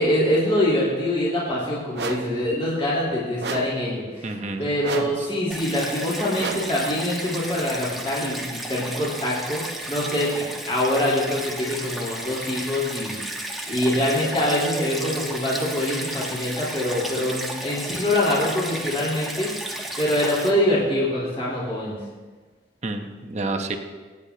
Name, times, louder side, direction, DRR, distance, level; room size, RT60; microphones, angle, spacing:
voice 1, 0.0-4.3 4.6-9.6 9.9-13.2 13.7-19.5 20.0-22.0, left 1 dB, 35° left, -7 dB, 4.0 m, -24 dB
sound 1, 1.9-2.4 3.4-3.9 4.8-5.3 6.4-6.8, right 4 dB, 70° right, 0.8 m, -31 dB
voice 2, 4.2-5.3 22.8-23.8, right 2 dB, 40° right, 5 dB, 1.0 m, -30 dB
Stream, 5.5-20.5, right 1 dB, ahead, 1.3 m, -33 dB
25.0 x 9.7 x 2.9 m, 1.4 s
head